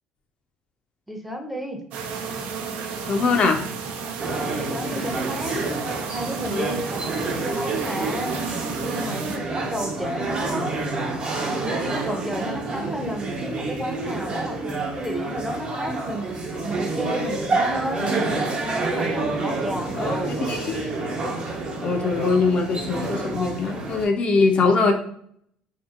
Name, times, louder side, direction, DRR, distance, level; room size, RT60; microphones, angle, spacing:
voice 1, 1.1-1.8 4.5-5.8 6.1-8.3 8.8-10.9 11.4-16.4 16.6-18.1 18.6-20.5, right 1 dB, 5° right, 3 dB, 0.6 m, -32 dB
sound 1, 1.9-9.4, right 5 dB, 70° right, 0.4 m, -32 dB
voice 2, 3.1-3.6 6.5-6.8 20.0-20.9 21.8-24.9, left 4 dB, 45° left, 4 dB, 0.4 m, -22 dB
sound 2, 4.2-24.1, right 2 dB, 50° right, 0.9 m, -28 dB
2.7 x 2.7 x 2.5 m, 0.63 s
supercardioid pair, 80°, 3 cm